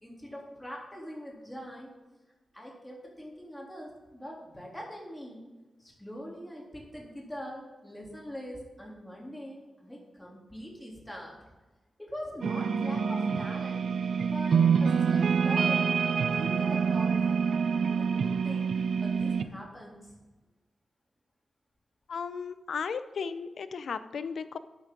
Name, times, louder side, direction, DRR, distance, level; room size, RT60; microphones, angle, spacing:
voice 1, 0.0-1.9 2.5-5.4 5.8-11.3 12.0-13.8 14.2-17.4 17.9-18.7 19.0-20.2, equal, 5° left, -3 dB, 3.3 m, -43 dB
sound 1, 12.4-19.4, right 6 dB, 80° right, 0.6 m, -26 dB
voice 2, 22.1-24.6, left 6 dB, 80° left, 12 dB, 0.6 m, -35 dB
12.5 x 8.9 x 3.9 m, 1.1 s
wide cardioid pair, 130°, 0 cm